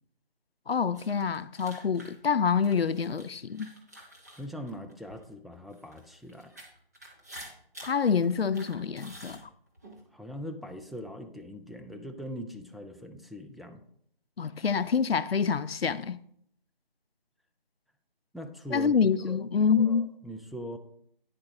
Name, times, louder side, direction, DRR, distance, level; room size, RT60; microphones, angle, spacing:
voice 1, 0.7-3.7 7.8-9.4 14.4-16.2 18.7-20.1, left 6 dB, 90° left, 0.5 m, -26 dB
sound 1, 0.9-5.2 5.7-10.0, right 1 dB, 20° right, 1.0 m, -49 dB
voice 2, 4.4-6.5 10.1-13.9 18.3-19.0 19.3-19.4 19.8-20.8, equal, ahead, 0.3 m, -41 dB
9.8 x 7.7 x 2.9 m
figure-of-eight pair, 165°, 29 cm